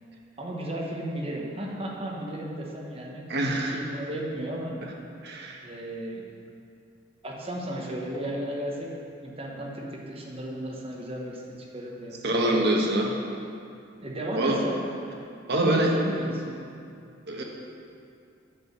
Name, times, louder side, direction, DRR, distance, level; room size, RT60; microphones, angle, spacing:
voice 1, 0.4-4.7 5.6-6.3 7.2-8.9 9.2-11.4 11.7-12.3 14.0-14.8 15.5-16.8, right 1 dB, 30° right, -2 dB, 1.1 m, -34 dB
voice 2, 3.3-3.8 4.8-4.9 5.2-5.6 12.2-13.1 14.3-14.6 15.5-16.0 17.3-17.4, right 1 dB, 60° right, 0 dB, 1.1 m, -25 dB
7.9 x 4.8 x 6.5 m, 2.4 s
head